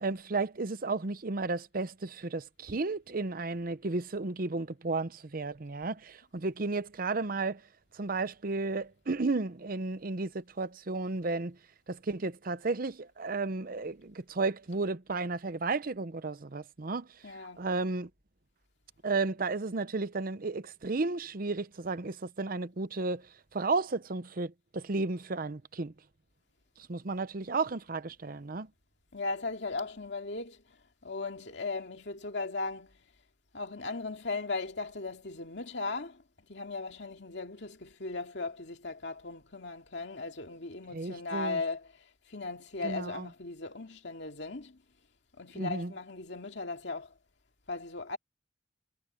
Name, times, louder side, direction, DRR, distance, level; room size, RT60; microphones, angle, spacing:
voice 1, 0.0-7.6 7.9-11.6 11.9-17.1 17.6-18.1 19.0-25.9 26.9-28.7 40.9-41.6 42.8-43.3 45.5-45.9, right 3 dB, 50° right, 0.8 m, -33 dB
voice 2, 17.2-17.6 29.1-30.8 31.0-33.0 33.5-36.2 36.5-44.8 45.4-47.2 47.7-48.2, left 3 dB, 70° left, 2.4 m, -37 dB
head